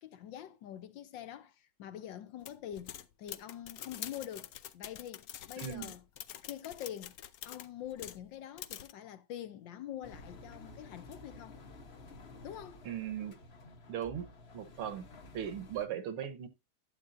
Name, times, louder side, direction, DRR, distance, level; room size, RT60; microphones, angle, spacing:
voice 1, 0.0-6.0 6.4-7.2 7.4-11.6 12.4-12.8, left 11 dB, 70° left, 1.3 m, -45 dB
sound 1, 2.4-8.3 8.6-8.9, left 11 dB, 90° left, 0.8 m, -46 dB
voice 2, 5.6-5.9 12.9-13.4 13.9-14.3 14.5-15.1 15.3-16.5, right 9 dB, 85° right, 2.0 m, -38 dB
Engine, 10.0-15.9, left 2 dB, 40° left, 1.0 m, -52 dB
12.0 x 8.4 x 2.5 m
omnidirectional pair, 2.3 m